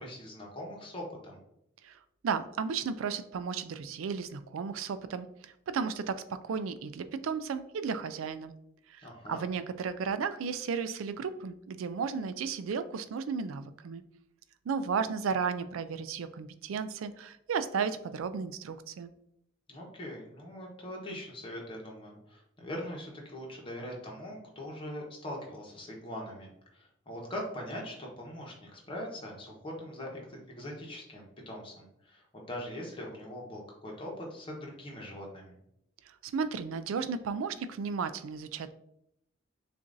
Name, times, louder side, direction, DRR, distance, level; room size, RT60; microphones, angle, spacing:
voice 1, 0.0-1.4 9.0-9.4 19.7-35.6, left 1 dB, 25° left, -2 dB, 1.0 m, -42 dB
voice 2, 1.8-8.5 8.9-14.0 14.7-19.1 36.1-38.7, right 5 dB, 85° right, 12 dB, 0.4 m, -34 dB
6.7 x 2.5 x 2.6 m, 0.77 s
head